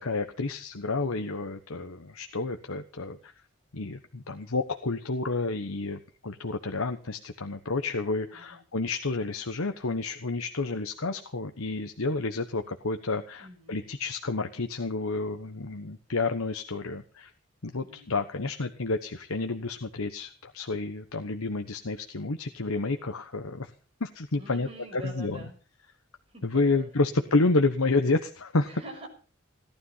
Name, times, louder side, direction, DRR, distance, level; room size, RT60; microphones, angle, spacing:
voice 1, 0.0-3.3 3.7-17.3 17.6-23.7 24.0-24.7 24.9-25.4 26.4-28.7, left 3 dB, 85° left, 7 dB, 1.2 m, -30 dB
voice 2, 13.4-13.8 17.8-18.2 24.4-25.5 26.3-27.1 28.7-29.1, right 1 dB, 25° right, 2 dB, 6.4 m, -46 dB
17.5 x 12.5 x 5.7 m, 0.38 s
head